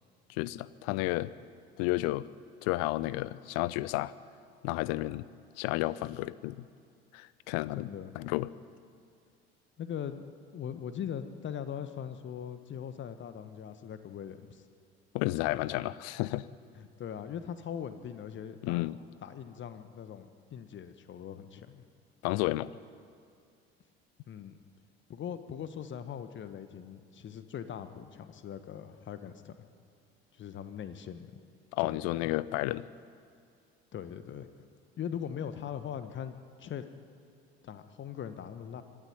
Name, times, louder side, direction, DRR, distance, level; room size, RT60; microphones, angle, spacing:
voice 1, 0.3-1.3 1.8-2.3 2.6-4.1 4.6-5.3 5.6-6.6 7.1-7.9 8.1-8.5 15.1-16.5 18.6-19.0 22.2-22.7 31.7-32.8, left 18 dB, 50° left, 19 dB, 0.7 m, -31 dB
voice 2, 7.8-8.1 9.8-10.2 10.5-14.6 15.5-15.6 16.8-18.9 19.2-21.8 24.3-24.6 25.1-29.5 30.3-31.3 31.8-32.3 33.9-34.5 35.0-36.8 37.6-38.8, left 8 dB, 35° left, 11 dB, 1.5 m, -41 dB
24.0 x 13.0 x 9.5 m, 2.3 s
figure-of-eight pair, 60°, 32 cm